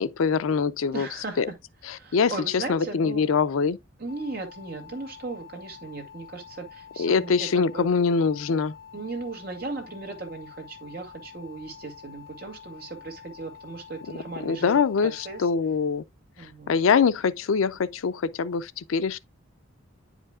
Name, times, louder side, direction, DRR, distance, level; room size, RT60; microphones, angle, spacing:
voice 1, 0.0-1.1 1.4-1.5 1.9-3.8 7.0-8.7 14.4-16.0 16.7-19.2, left 5 dB, 85° left, 0.5 m, -24 dB
voice 2, 0.9-1.6 1.9-3.3 4.0-7.8 8.9-15.5 16.4-16.7, right 3 dB, 50° right, 2.0 m, -37 dB
sound 1, 4.1-15.5, left 8 dB, 70° left, 2.4 m, -47 dB
9.5 x 5.1 x 2.3 m
head